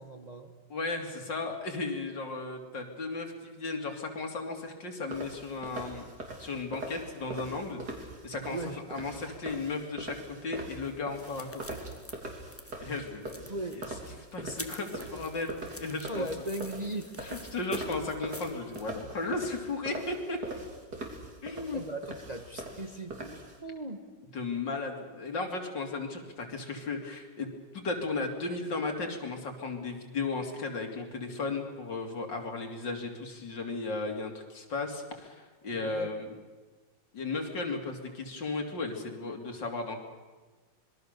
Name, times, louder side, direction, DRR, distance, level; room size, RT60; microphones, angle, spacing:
voice 1, 0.0-0.5 8.4-8.8 13.5-13.8 16.1-17.1 21.7-24.0 35.7-36.1, right 1 dB, 25° right, 5 dB, 1.4 m, -38 dB
voice 2, 0.7-6.1 6.4-8.6 8.9-11.8 12.8-13.5 14.3-16.3 17.2-20.4 21.4-21.8 24.3-27.5 27.7-36.4 37.1-40.0, left 3 dB, 70° left, 3 dB, 3.6 m, -35 dB
sound 1, 5.1-23.6, right 2 dB, 55° right, 3.8 m, -42 dB
sound 2, 10.8-18.9, left 1 dB, 10° left, 1.0 m, -49 dB
26.0 x 21.5 x 6.8 m, 1.3 s
omnidirectional pair, 2.0 m